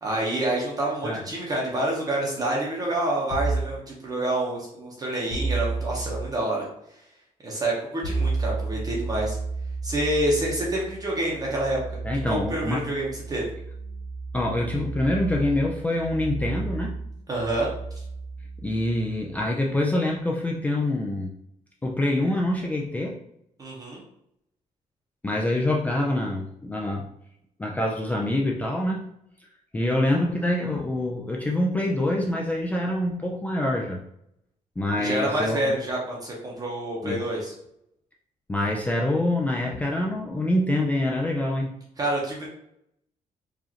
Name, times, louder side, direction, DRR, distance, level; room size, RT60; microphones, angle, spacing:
voice 1, 0.0-6.7 7.4-9.4 9.8-11.8 12.3-13.5 17.3-17.7 23.6-24.0 35.0-37.5 42.0-42.5, right 1 dB, 25° right, -3 dB, 0.8 m, -27 dB
sound 1, 3.3-3.7 5.3-6.2 8.0-19.4, right 3 dB, 50° left, 0.9 m, -32 dB
voice 2, 12.0-12.8 14.3-16.9 18.6-21.3 21.8-23.2 25.2-27.1 27.6-29.1 29.7-34.0 34.8-35.7 37.0-37.2 38.5-41.7, left 1 dB, 10° left, -2 dB, 0.3 m, -25 dB
4.9 x 2.4 x 2.8 m, 0.76 s
cardioid pair, 170°, 14 cm